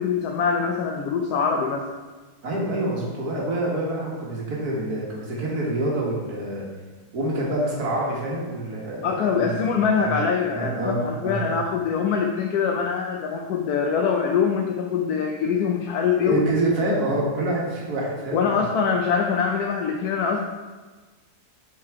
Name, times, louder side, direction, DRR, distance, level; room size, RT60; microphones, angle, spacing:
voice 1, 0.0-1.9 9.0-16.4 16.9-17.0 18.3-20.4, left 6 dB, 85° left, 1 dB, 1.2 m, -23 dB
voice 2, 2.4-6.6 7.1-10.1 10.5-11.6 16.2-18.6, right 2 dB, 80° right, -3 dB, 2.0 m, -27 dB
7.7 x 4.6 x 4.8 m, 1.3 s
omnidirectional pair, 1.6 m